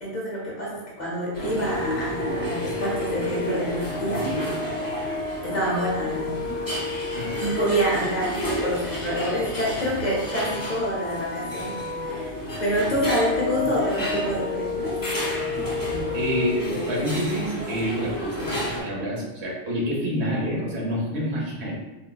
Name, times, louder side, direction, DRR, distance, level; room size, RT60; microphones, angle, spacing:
voice 1, 0.0-4.3 5.4-6.3 7.4-12.3 12.6-15.0, equal, 45° left, -5 dB, 0.9 m, -27 dB
sound 1, 1.3-18.8, equal, 25° left, 0.6 m, -32 dB
Brass instrument, 1.5-8.0 10.1-16.6, left 4 dB, 70° left, 0.8 m, -32 dB
voice 2, 15.4-15.7 16.1-21.7, equal, 75° right, -4 dB, 1.2 m, -28 dB
4.5 x 2.1 x 2.2 m, 1.0 s
omnidirectional pair, 1.1 m